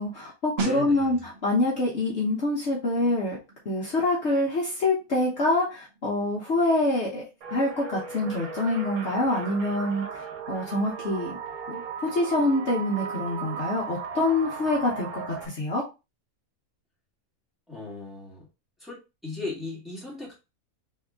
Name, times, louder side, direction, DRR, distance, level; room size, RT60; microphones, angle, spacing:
voice 1, 0.0-3.4 3.6-7.2 7.5-11.4 11.7-11.8 12.1-15.8, left 2 dB, 55° left, -4 dB, 1.4 m, -26 dB
voice 2, 0.6-1.1 17.7-18.5 18.8-20.4, left 3 dB, ahead, -5 dB, 2.1 m, -37 dB
sound 1, 0.6-11.1 11.4-11.6, right 4 dB, 50° right, 1.1 m, -42 dB
sound 2, 7.4-15.5, right 6 dB, 85° right, 1.4 m, -36 dB
3.6 x 3.5 x 3.6 m, 0.27 s
omnidirectional pair, 1.5 m